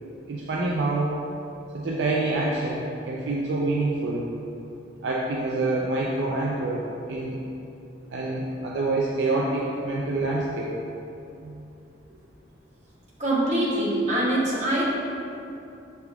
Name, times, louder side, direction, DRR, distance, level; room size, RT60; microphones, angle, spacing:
voice 1, 0.3-1.1 1.7-4.3 5.0-7.4 8.1-10.7 11.4-11.7, right 2 dB, 70° right, -3 dB, 0.4 m, -26 dB
voice 2, 13.2-14.8, right 1 dB, 40° right, -7 dB, 1.0 m, -24 dB
5.8 x 3.4 x 2.3 m, 2.7 s
head